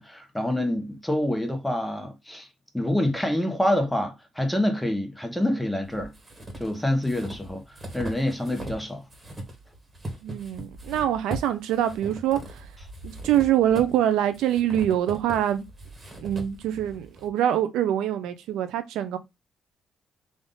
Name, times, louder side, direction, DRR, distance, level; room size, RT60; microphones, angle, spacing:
voice 1, 0.0-2.5 2.7-6.1 6.6-9.0, left 1 dB, 5° left, 1.0 m, -27 dB
sound 1, 5.8-8.8 9.1-17.3, right 1 dB, 30° right, 1.3 m, -40 dB
voice 2, 10.2-12.7 13.0-15.6 16.2-19.2, right 11 dB, 90° right, 0.4 m, -24 dB
3.6 x 2.5 x 3.7 m
cardioid pair, 90°, 0 cm